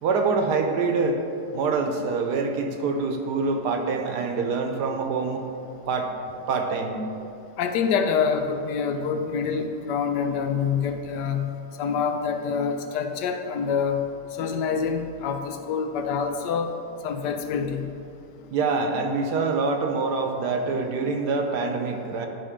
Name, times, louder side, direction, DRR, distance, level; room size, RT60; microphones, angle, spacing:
voice 1, 0.0-1.2 1.5-5.4 5.9-6.1 6.5-7.0 18.5-22.3, right 4 dB, 75° right, 4 dB, 1.3 m, -25 dB
voice 2, 7.6-11.5 11.8-14.0 14.4-16.7 17.0-17.9, left 6 dB, 80° left, 6 dB, 1.2 m, -26 dB
10.5 x 3.9 x 5.0 m, 2.6 s
omnidirectional pair, 1.8 m